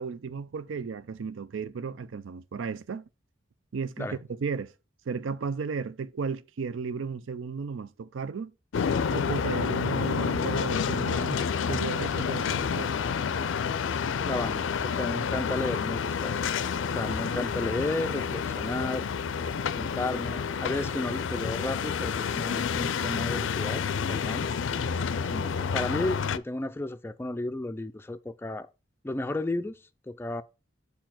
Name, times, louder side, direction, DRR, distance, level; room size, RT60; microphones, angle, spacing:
voice 1, 0.0-3.1 3.7-4.7 5.1-8.5 9.1-13.1, right 5 dB, 85° right, 0.5 m, -34 dB
sound 1, 8.7-26.4, left 6 dB, 80° left, 0.4 m, -29 dB
voice 2, 14.2-16.4 16.9-19.1 19.8-24.5 25.3-28.7 29.0-29.8 30.1-30.4, left 2 dB, 10° left, 0.3 m, -33 dB
5.3 x 4.5 x 5.8 m
head